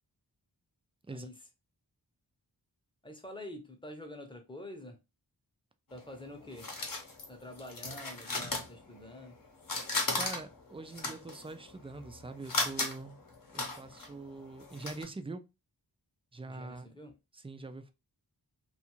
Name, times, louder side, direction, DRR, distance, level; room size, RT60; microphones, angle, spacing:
voice 1, 3.0-5.0 5.9-6.7 7.3-9.3 16.5-17.1, left 1 dB, 10° left, 0.7 m, -47 dB
sound 1, 5.9-9.3 9.6-15.0, left 3 dB, 50° left, 0.8 m, -36 dB
voice 2, 10.2-13.2 13.5-15.4 16.3-16.9 17.3-17.9, right 3 dB, 15° right, 0.3 m, -44 dB
2.5 x 2.4 x 2.9 m
wide cardioid pair, 50°, 42 cm